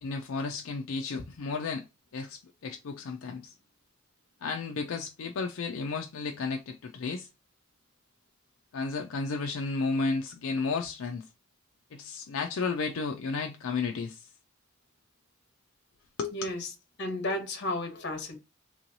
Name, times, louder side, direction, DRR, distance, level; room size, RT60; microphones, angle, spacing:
voice 1, 0.0-1.8 2.1-3.5 4.4-7.3 8.7-11.3 11.9-14.3 16.2-16.5, left 4 dB, 75° left, 0.4 m, -33 dB
voice 2, 16.3-16.7 17.0-18.4, left 1 dB, 55° left, 1.2 m, -33 dB
3.7 x 3.1 x 2.6 m
head